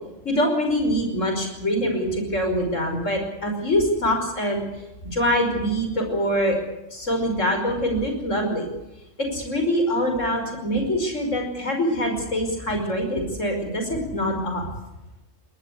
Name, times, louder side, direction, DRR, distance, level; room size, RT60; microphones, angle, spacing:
voice 1, 0.2-4.7 5.1-6.6 6.9-8.7 9.2-14.7, equal, 80° left, 4 dB, 5.8 m, -24 dB
22.0 x 19.5 x 8.3 m, 0.96 s
omnidirectional pair, 1.3 m